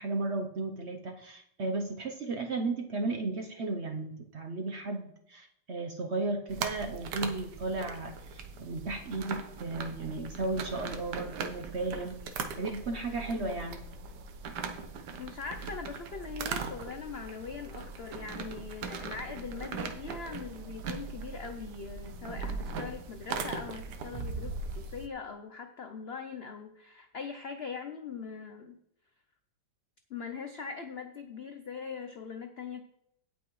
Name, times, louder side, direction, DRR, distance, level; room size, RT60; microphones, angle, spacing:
voice 1, 0.0-12.2 12.6-13.8, right 2 dB, 55° right, 4 dB, 0.8 m, -34 dB
sound 1, 6.5-25.1, right 5 dB, 70° right, 1.4 m, -40 dB
voice 2, 15.2-28.8 30.1-32.8, left 5 dB, 90° left, 6 dB, 0.5 m, -41 dB
17.0 x 5.9 x 3.1 m, 0.73 s
omnidirectional pair, 2.0 m